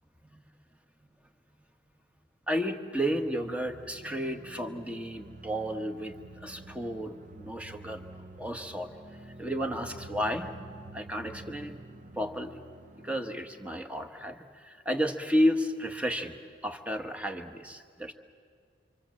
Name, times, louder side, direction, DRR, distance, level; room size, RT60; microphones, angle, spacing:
voice 1, 2.5-6.1 6.4-8.0 8.4-8.9 9.3-10.5 10.9-11.7 12.1-12.6 13.0-16.4 16.6-18.1, equal, 5° right, 6 dB, 1.3 m, -32 dB
sound 1, 3.1-13.9, right 2 dB, 40° right, 0.7 m, -48 dB
27.5 x 25.5 x 7.6 m, 2.1 s
head